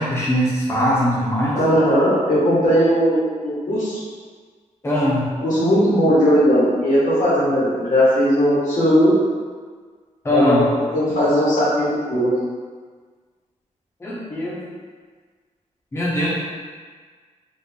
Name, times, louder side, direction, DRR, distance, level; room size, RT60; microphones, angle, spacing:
voice 1, 0.0-1.6 4.8-5.3 10.2-10.7 14.0-14.6 15.9-16.3, equal, 20° left, -6 dB, 0.6 m, -20 dB
voice 2, 1.5-4.0 5.4-9.1 10.3-10.6 10.9-12.3, equal, 80° left, -8 dB, 1.4 m, -18 dB
4.0 x 2.0 x 3.5 m, 1.5 s
wide cardioid pair, 150°, 13 cm